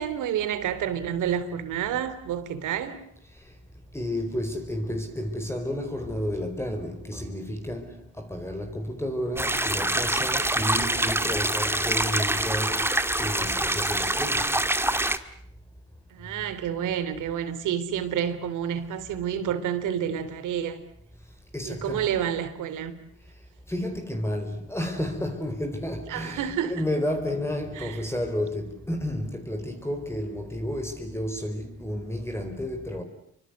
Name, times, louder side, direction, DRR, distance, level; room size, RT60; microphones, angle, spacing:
voice 1, 0.0-3.0 16.1-20.8 21.6-23.0 26.1-26.7 27.8-27.9, right 9 dB, 85° right, 3.2 m, -29 dB
voice 2, 3.9-12.8 13.2-14.5 21.5-22.1 23.7-33.0, left 1 dB, 10° left, 4.4 m, -31 dB
sound 1, 9.4-15.2, right 1 dB, 10° right, 1.8 m, -25 dB
28.5 x 25.0 x 8.0 m
cardioid pair, 90°, 30 cm